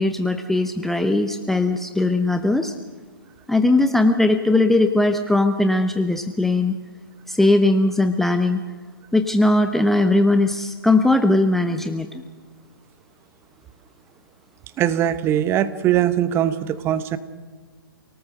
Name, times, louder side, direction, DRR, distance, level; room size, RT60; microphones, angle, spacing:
voice 1, 0.0-2.7 3.5-6.7 7.3-8.6 9.1-12.2, left 2 dB, ahead, 7 dB, 0.7 m, -19 dB
voice 2, 14.8-17.2, right 11 dB, 20° right, 14 dB, 1.0 m, -21 dB
28.0 x 19.0 x 6.6 m, 1.4 s
figure-of-eight pair, 120°, 12 cm